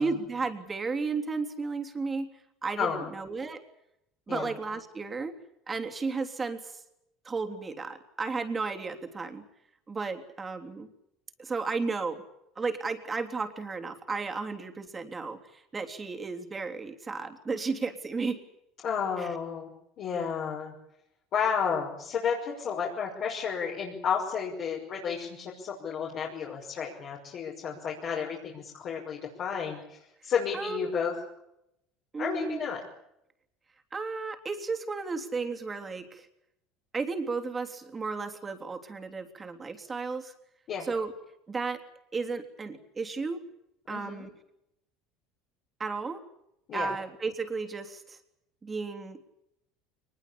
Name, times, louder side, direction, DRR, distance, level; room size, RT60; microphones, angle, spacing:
voice 1, 0.0-2.3 2.6-3.6 4.3-5.3 5.7-6.8 7.3-9.4 9.9-10.9 11.4-12.2 12.6-18.4 19.2-19.3 30.5-30.9 32.1-32.6 33.9-36.3 36.9-40.3 40.8-41.1 41.5-41.8 42.1-43.4 43.9-44.3 45.8-46.2 46.7-48.2 48.6-49.3, right 4 dB, 25° right, 5 dB, 3.4 m, -33 dB
voice 2, 2.8-3.1 4.3-4.5 18.8-20.7 21.3-30.0 30.2-31.1 32.2-32.8 40.7-40.9 43.9-44.3 46.7-46.9, left 7 dB, 50° left, -3 dB, 5.9 m, -32 dB
22.5 x 21.0 x 8.7 m, 0.81 s
supercardioid pair, 105°, 0 cm